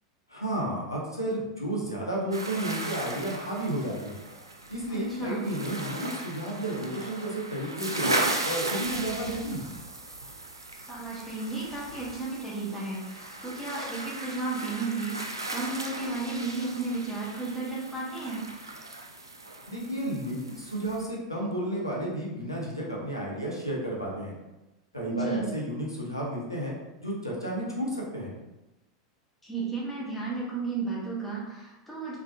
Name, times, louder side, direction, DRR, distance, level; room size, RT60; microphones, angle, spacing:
voice 1, 0.3-4.2 4.7-5.9 6.2-8.1 8.4-9.6 19.7-24.3 24.9-26.7 27.0-28.3, right 1 dB, 85° left, -4 dB, 0.8 m, -32 dB
sound 1, 2.3-21.0, right 2 dB, 80° right, 0.4 m, -36 dB
voice 2, 4.9-5.4 10.9-18.4 25.1-25.4 29.4-32.2, right 3 dB, 5° left, -6 dB, 1.2 m, -33 dB
3.5 x 3.4 x 2.3 m, 1.0 s
figure-of-eight pair, 85°, 2 cm